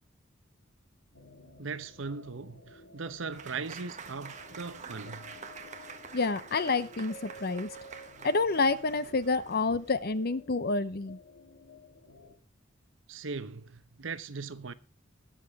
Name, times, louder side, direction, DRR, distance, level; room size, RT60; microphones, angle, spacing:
sound 1, 1.1-12.4, equal, 75° left, 3.6 m, -53 dB
voice 1, 1.6-5.4 13.1-14.7, right 4 dB, 70° right, 0.9 m, -39 dB
Applause / Crowd, 3.3-10.1, right 5 dB, 40° right, 1.5 m, -47 dB
voice 2, 6.1-7.7 8.2-11.2, left 3 dB, 50° left, 0.8 m, -28 dB
19.0 x 7.5 x 3.6 m
head